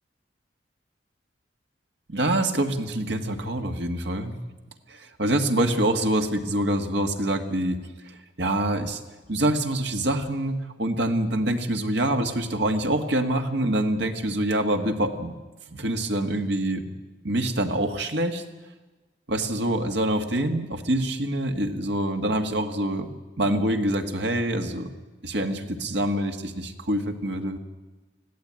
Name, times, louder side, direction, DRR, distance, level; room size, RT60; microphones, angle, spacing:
voice 1, 2.1-4.3 4.9-7.8 8.4-9.0 9.3-15.3 15.7-16.8 17.2-18.4 19.3-23.1 23.4-24.9 25.2-27.6, right 1 dB, 65° right, 5 dB, 1.8 m, -25 dB
20.5 x 15.0 x 8.8 m, 1.2 s
head